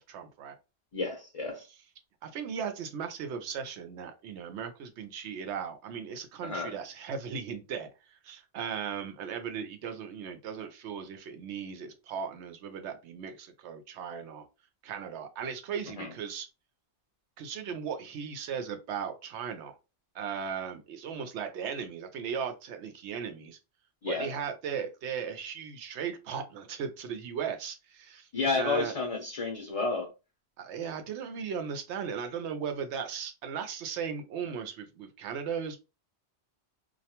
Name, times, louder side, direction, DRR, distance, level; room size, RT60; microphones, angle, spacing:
voice 1, 0.1-0.5 2.2-14.4 14.8-16.5 17.4-19.8 20.1-23.6 24.1-28.3 28.5-28.9 30.6-35.8, right 7 dB, 90° right, 0.9 m, -37 dB
voice 2, 0.9-1.7 6.4-6.7 16.0-16.1 24.0-24.3 28.3-30.1, left 3 dB, 45° left, 0.5 m, -31 dB
2.3 x 2.2 x 2.8 m
omnidirectional pair, 1.1 m